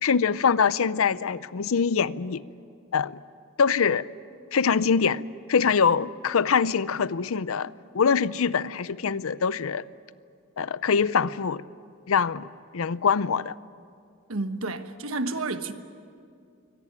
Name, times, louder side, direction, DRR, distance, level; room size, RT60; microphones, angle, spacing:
voice 1, 0.0-2.4 2.9-3.2 3.6-4.1 4.5-5.2 5.5-9.8 10.6-11.6 12.1-12.5 12.7-13.5, left 6 dB, 90° left, 0.6 m, -24 dB
voice 2, 14.3-15.7, right 2 dB, 90° right, 1.2 m, -30 dB
24.0 x 18.0 x 9.4 m
head